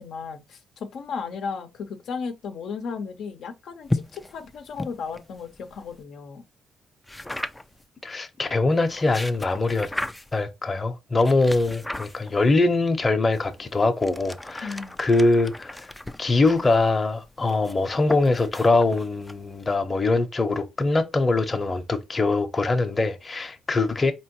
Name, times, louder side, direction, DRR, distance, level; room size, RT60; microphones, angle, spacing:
voice 1, 0.0-6.4 14.6-15.0, left 5 dB, 70° left, 0.7 m, -35 dB
sound 1, 3.9-6.0 7.1-7.8 8.7-10.5 11.2-12.5 13.3-19.7, left 1 dB, 10° left, 0.4 m, -36 dB
voice 2, 8.0-9.9 10.3-15.9 16.2-24.1, left 3 dB, 25° left, 0.8 m, -23 dB
4.3 x 3.0 x 3.0 m
cardioid pair, 90°, 0 cm